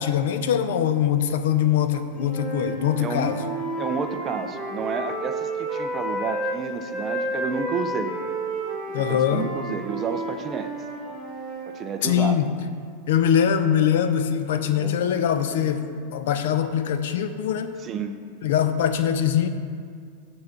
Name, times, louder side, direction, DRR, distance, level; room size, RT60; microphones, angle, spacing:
voice 1, 0.0-3.4 8.9-9.5 12.0-12.5 13.1-17.8 18.4-19.5, left 9 dB, 65° left, 10 dB, 0.5 m, -22 dB
Wind instrument woodwind instrument, 2.2-6.6 6.9-11.7, right 1 dB, 5° left, 1.9 m, -31 dB
voice 2, 3.0-3.4 3.8-8.2 8.9-10.7 11.7-12.4 14.5-15.1 17.8-18.2, right 6 dB, 20° right, 8 dB, 0.3 m, -31 dB
7.3 x 4.7 x 6.4 m, 2.2 s
supercardioid pair, 175°, 0 cm